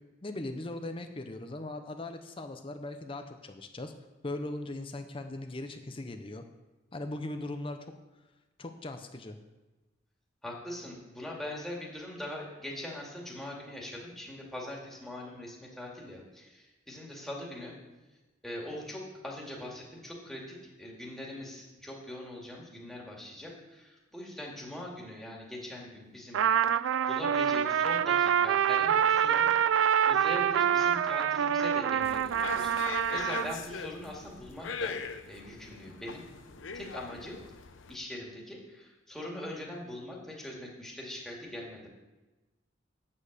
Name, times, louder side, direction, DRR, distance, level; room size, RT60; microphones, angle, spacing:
voice 1, 0.2-3.9 4.2-6.4 6.9-7.9 8.6-9.4, left 2 dB, 30° left, 7 dB, 0.6 m, -39 dB
voice 2, 10.4-17.7 18.4-26.4 27.1-29.5 30.1-34.9 35.3-36.3 36.7-37.4 37.9-41.9, left 1 dB, ahead, -3 dB, 2.1 m, -42 dB
Trumpet, 26.3-33.6, right 8 dB, 80° right, 0.3 m, -26 dB
sound 1, 32.0-37.9, left 5 dB, 85° left, 0.7 m, -41 dB
8.8 x 7.5 x 6.6 m, 1.1 s
head